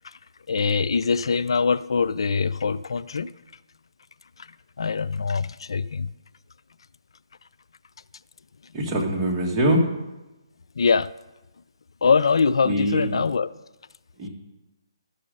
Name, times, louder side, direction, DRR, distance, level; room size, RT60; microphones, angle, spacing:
voice 1, 0.5-3.3 4.8-6.1 10.8-11.1 12.0-13.5, left 5 dB, 70° left, 15 dB, 0.3 m, -23 dB
voice 2, 8.7-9.8 12.6-13.3 14.2-14.3, equal, 15° right, -3 dB, 1.7 m, -23 dB
12.0 x 6.3 x 5.3 m, 1.0 s
hypercardioid pair, 155°, 3 cm